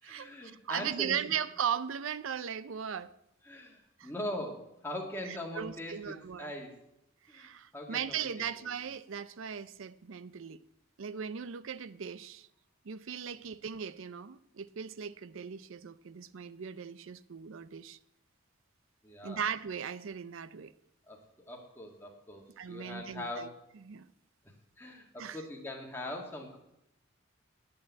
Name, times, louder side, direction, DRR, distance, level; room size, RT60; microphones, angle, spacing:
voice 1, 0.0-1.2 3.4-6.8 7.3-8.7 19.0-19.4 21.1-21.2 21.5-23.6 24.8-26.6, left 1 dB, 10° left, 1.9 m, -41 dB
voice 2, 0.6-3.1 4.0-4.1 5.3-6.5 7.3-10.6 11.0-12.5 12.8-18.0 19.2-20.7 22.6-23.5 23.8-24.0 25.2-25.4, right 8 dB, 75° right, 0.5 m, -38 dB
8.8 x 8.6 x 8.3 m
head